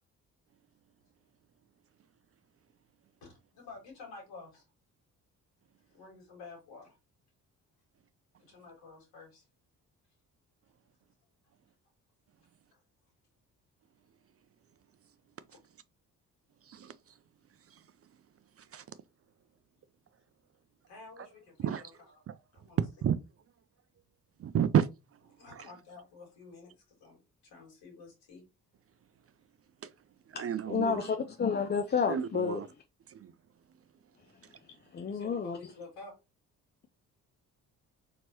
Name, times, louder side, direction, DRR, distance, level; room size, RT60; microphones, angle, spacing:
voice 1, 3.2-4.6 5.9-7.0 8.4-9.4 12.7-12.8 20.9-21.9 22.5-22.8 25.4-28.5 35.0-36.2, left 4 dB, 70° left, 2.6 m, -50 dB
voice 2, 16.6-17.2 17.7-17.8 18.6-18.9 21.2-21.3 21.6-22.4 22.8-23.2 24.4-25.2 25.5-25.7 29.8-29.9 30.3-31.1 32.1-32.7 33.1-33.3 34.4-34.6, right 9 dB, 35° right, 0.4 m, -32 dB
voice 3, 30.7-32.6 34.9-35.6, left 6 dB, 25° left, 0.5 m, -30 dB
4.4 x 4.1 x 3.0 m
hypercardioid pair, 40°, 45 cm